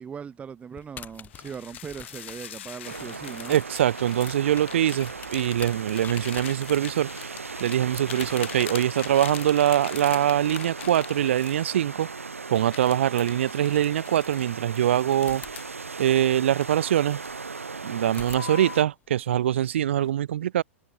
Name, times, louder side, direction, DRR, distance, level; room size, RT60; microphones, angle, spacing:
voice 1, 0.0-3.6, right 7 dB, 15° right, 1.0 m, -39 dB
sound 1, 0.7-11.5 13.0-13.1 13.8-14.8 15.2-17.5 18.0-20.1, left 9 dB, 25° left, 4.8 m, -49 dB
sound 2, 1.3-12.1 12.6-15.8 16.3-17.2 17.6-17.9 18.3-18.9, left 12 dB, 60° left, 0.9 m, -42 dB
sound 3, 2.9-18.8, right 4 dB, 80° right, 1.2 m, -37 dB
voice 2, 3.5-7.3 7.6-12.1 12.5-15.4 16.0-17.2 17.8-20.6, right 11 dB, 60° right, 0.5 m, -23 dB
figure-of-eight pair, 100°, 7 cm